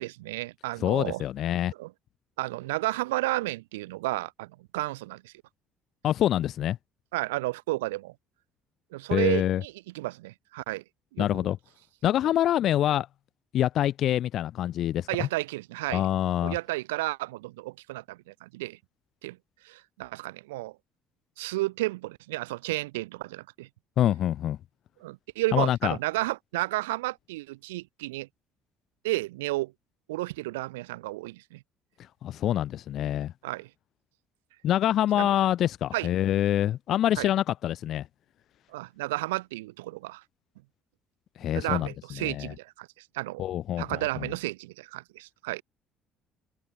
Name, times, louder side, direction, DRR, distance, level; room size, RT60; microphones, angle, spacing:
voice 1, 0.0-1.2 1.8-1.9 2.4-5.3 7.1-8.1 8.9-10.8 11.1-11.3 15.1-16.1 16.4-18.8 19.2-19.4 19.6-20.7 21.4-23.7 25.0-28.3 29.0-29.7 30.1-31.6 33.4-33.7 35.2-35.3 35.9-36.1 37.2-37.3 38.7-40.2 41.5-42.9 43.1-43.5 43.8-45.6, right 19 dB, 90° right, 0.8 m, -32 dB
voice 2, 0.8-1.7 6.0-6.8 9.1-9.6 11.2-11.6 12.0-13.1 13.5-15.3 15.9-16.6 24.0-24.6 25.5-26.0 32.2-33.3 34.6-38.1 41.4-41.9 42.2-42.5 43.4-44.3, left 12 dB, 60° left, 0.4 m, -26 dB
open air
hypercardioid pair, 65°, 0 cm